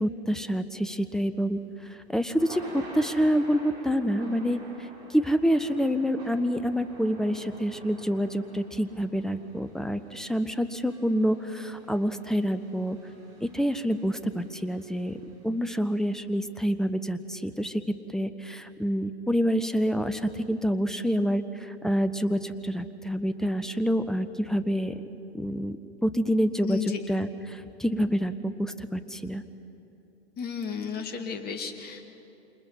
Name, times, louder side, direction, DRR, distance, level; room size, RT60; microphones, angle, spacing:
voice 1, 0.0-1.6 2.1-4.6 5.1-13.0 13.4-17.8 18.1-25.0 25.3-25.8 26.0-26.8 27.1-29.4, equal, ahead, 10 dB, 0.8 m, -27 dB
Thunder / Rain, 1.4-15.6, right 2 dB, 45° right, 6.6 m, -49 dB
voice 2, 26.7-27.0 30.4-32.1, left 6 dB, 30° left, 6 dB, 2.1 m, -33 dB
28.0 x 27.5 x 5.8 m, 3.0 s
figure-of-eight pair, 100°, 33 cm